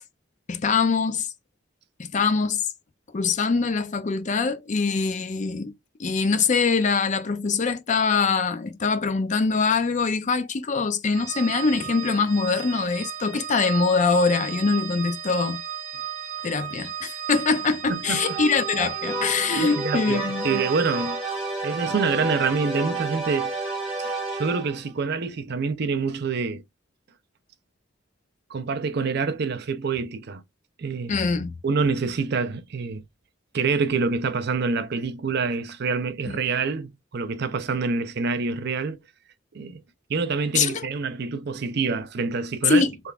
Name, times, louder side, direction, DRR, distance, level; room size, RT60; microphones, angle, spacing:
voice 1, 0.5-1.3 2.1-2.6 3.1-5.7 6.0-15.6 16.4-20.6 31.1-31.5 36.3-36.4 40.5-40.9 42.7-42.9, left 4 dB, 40° left, 0.5 m, -23 dB
Organ, 11.1-21.5, right 10 dB, 35° right, 1.3 m, -34 dB
voice 2, 17.9-18.4 19.5-21.2 21.6-26.6 28.5-30.4 30.8-31.2 31.6-33.0 33.5-39.0 39.5-39.8 40.1-42.8, right 4 dB, 55° right, 0.5 m, -26 dB
sound 1, 18.0-24.9, right 2 dB, 5° right, 2.0 m, -31 dB
3.5 x 3.2 x 2.3 m
head